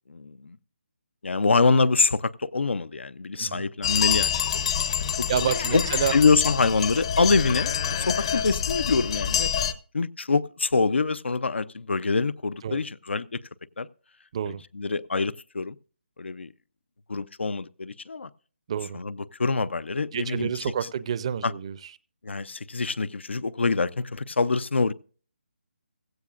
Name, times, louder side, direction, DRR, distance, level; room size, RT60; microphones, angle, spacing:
voice 1, 0.1-0.6 1.2-4.8 5.2-5.3 5.7-5.8 6.1-9.5 9.9-13.4 13.8-13.9 14.5-15.8 16.2-16.5 17.1-18.3 18.9-20.5 21.4-21.5 22.2-24.9, left 4 dB, 85° left, 0.6 m, -25 dB
voice 2, 3.3-3.6 5.3-6.2 12.6-12.8 14.3-14.6 18.7-19.0 20.1-21.8, right 8 dB, 30° right, 0.5 m, -28 dB
sound 1, 3.8-9.7, left 8 dB, 30° left, 0.6 m, -26 dB
16.0 x 15.5 x 2.4 m
hypercardioid pair, 165°, 6 cm